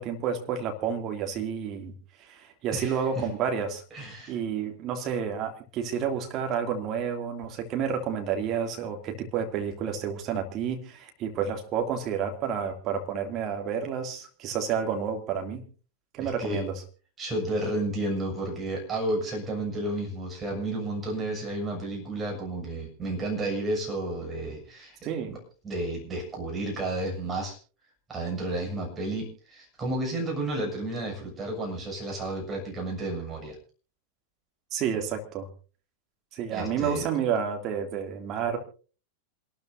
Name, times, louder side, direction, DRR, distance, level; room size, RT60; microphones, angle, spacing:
voice 1, 0.0-1.9 2.2-3.8 4.3-15.6 16.1-16.8 25.0-25.4 34.7-35.5 36.3-38.6, right 7 dB, 35° right, 4 dB, 2.7 m, -30 dB
voice 2, 2.7-3.3 3.9-4.4 16.2-16.6 17.2-25.0 25.3-25.4 25.6-27.6 28.1-33.6 36.5-37.1, right 1 dB, 20° right, 0 dB, 6.9 m, -32 dB
27.0 x 13.0 x 2.7 m, 0.38 s
figure-of-eight pair, 90°, 0 cm